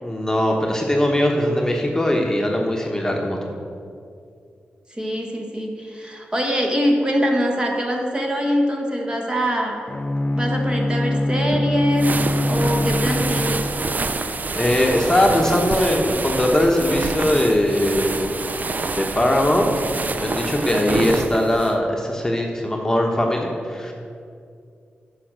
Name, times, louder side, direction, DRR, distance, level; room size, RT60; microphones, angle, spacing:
voice 1, 0.0-3.4 14.6-18.3 19.0-19.7 20.0-23.9, left 1 dB, 15° left, 0 dB, 1.3 m, -20 dB
voice 2, 4.9-9.8 10.3-12.1 12.5-13.6, equal, 25° right, 1 dB, 1.6 m, -23 dB
Bowed string instrument, 9.9-14.1, left 1 dB, 35° left, 0.5 m, -23 dB
sound 1, 11.9-21.7, right 3 dB, 45° right, 0.5 m, -27 dB
9.7 x 5.5 x 6.2 m, 2.4 s
cardioid pair, 60°, 4 cm